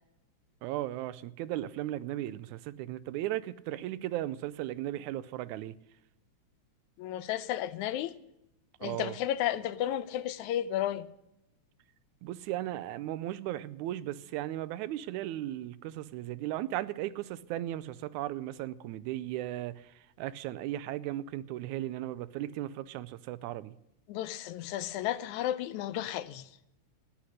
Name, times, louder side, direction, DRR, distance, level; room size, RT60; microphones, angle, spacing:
voice 1, 0.6-5.8 8.8-9.2 12.2-23.8, right 14 dB, 85° right, 2.0 m, -36 dB
voice 2, 7.0-8.1 8.8-11.1 24.1-26.5, left 12 dB, 85° left, 2.1 m, -33 dB
14.0 x 10.0 x 6.4 m
omnidirectional pair, 3.3 m